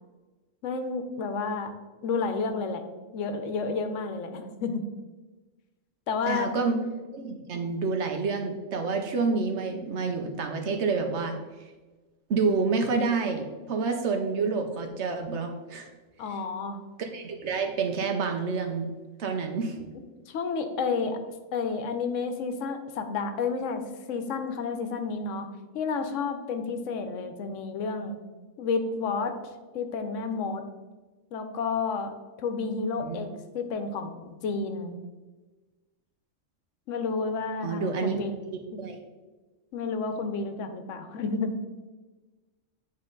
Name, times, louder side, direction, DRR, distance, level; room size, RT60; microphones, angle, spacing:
voice 1, 0.6-1.7 2.0-2.8 3.1-4.8 6.1-6.5 16.2-16.8 20.3-21.2 21.5-23.8 24.1-25.5 25.7-28.2 28.6-29.3 29.7-30.6 31.3-32.1 32.4-33.3 33.5-35.0 36.9-38.4 38.7-38.8 39.7-41.5, left 4 dB, 75° left, 8 dB, 1.0 m, -30 dB
voice 2, 6.3-6.8 7.1-11.3 12.3-15.9 17.0-18.9 19.2-19.8 33.0-33.2 37.6-38.2 38.8-39.0, right 4 dB, 65° right, 4 dB, 1.0 m, -28 dB
9.2 x 3.2 x 3.7 m, 1.2 s
omnidirectional pair, 1.3 m